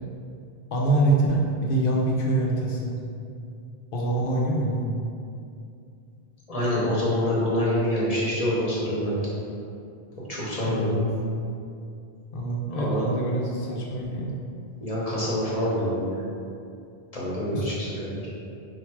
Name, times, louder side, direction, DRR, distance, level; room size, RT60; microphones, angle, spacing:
voice 1, 0.7-2.9 3.9-4.8 10.6-11.1 12.3-14.4 17.5-17.7, right 1 dB, 60° left, -3 dB, 0.8 m, -25 dB
voice 2, 6.5-9.3 10.3-10.9 12.7-13.0 14.8-16.2 17.1-18.3, left 1 dB, 35° left, -7 dB, 0.9 m, -26 dB
3.4 x 2.5 x 4.5 m, 2.5 s
omnidirectional pair, 1.1 m